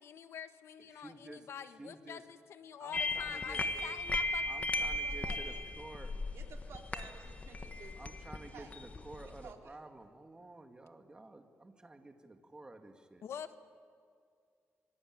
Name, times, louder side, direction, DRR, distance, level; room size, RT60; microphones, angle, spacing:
voice 1, 0.0-4.4 13.2-13.5, left 8 dB, 75° left, 10 dB, 1.4 m, -46 dB
voice 2, 0.8-1.5 1.8-2.2 2.8-3.6 4.5-6.1 8.0-13.2, right 2 dB, 20° right, 5 dB, 2.2 m, -51 dB
sound 1, 2.9-9.5, left 2 dB, 30° left, 1.6 m, -37 dB
voice 3, 2.9-3.9 4.7-5.6 6.3-8.2 8.5-8.7 9.2-9.8, right 6 dB, 75° right, 2 dB, 3.6 m, -54 dB
26.0 x 24.5 x 9.0 m, 2.2 s
cardioid pair, 125°, 5 cm